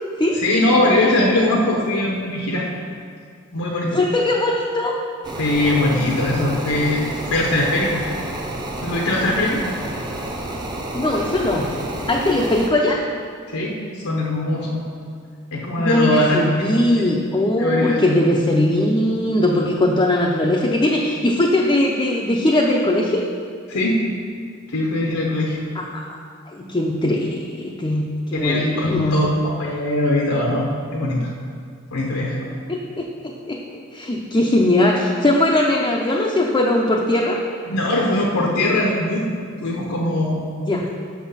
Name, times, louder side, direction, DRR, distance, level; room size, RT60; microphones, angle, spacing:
voice 1, 0.4-2.7 3.5-4.0 5.4-8.0 8.8-9.6 13.5-14.8 15.5-16.4 17.0-17.1 17.6-18.0 23.7-24.1 24.7-25.6 28.3-31.3 31.9-32.5 37.7-39.3 39.6-40.4, left 1 dB, 85° left, -1 dB, 0.9 m, -21 dB
voice 2, 3.9-4.9 10.9-11.7 12.1-13.0 15.8-23.2 25.8-26.2 26.5-29.2 32.7-33.6 33.9-37.4 40.6-40.8, left 1 dB, 20° left, -1 dB, 0.5 m, -20 dB
sound 1, 5.2-12.7, right 1 dB, 20° right, 0.8 m, -30 dB
6.2 x 5.9 x 5.5 m, 2.2 s
head